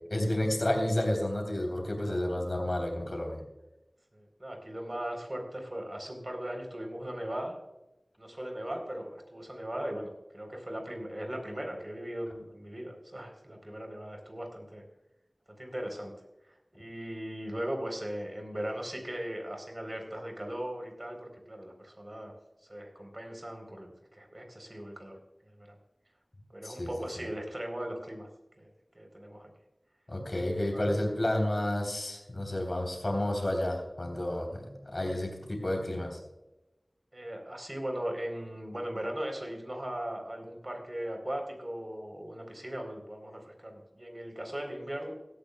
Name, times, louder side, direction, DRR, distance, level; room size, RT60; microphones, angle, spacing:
voice 1, 0.1-3.4 26.6-26.9 30.1-36.2, left 1 dB, 55° left, 2 dB, 3.3 m, -31 dB
voice 2, 4.1-7.6 8.2-14.8 15.6-16.3 16.7-22.4 22.7-25.8 26.5-28.3 28.6-29.5 30.7-30.9 37.1-45.1, right 1 dB, 40° right, 3 dB, 3.6 m, -38 dB
17.0 x 13.0 x 2.3 m, 0.94 s
wide cardioid pair, 50°, 0 cm